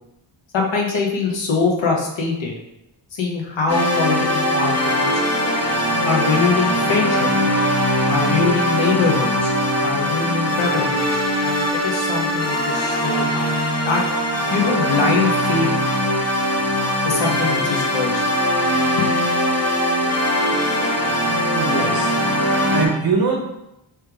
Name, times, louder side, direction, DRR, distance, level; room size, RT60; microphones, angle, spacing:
voice 1, 0.5-2.5 3.1-5.2 6.0-7.3 8.1-9.5 9.8-13.5 13.8-14.0 14.5-15.7 17.0-18.3 19.0-19.1, left 4 dB, 65° left, -1 dB, 0.9 m, -23 dB
sound 1, 3.7-22.9, equal, 30° left, 0.6 m, -21 dB
voice 2, 21.6-22.4 22.7-23.4, right 4 dB, 50° right, -1 dB, 0.8 m, -22 dB
3.3 x 3.2 x 3.3 m, 0.87 s
wide cardioid pair, 145°, 49 cm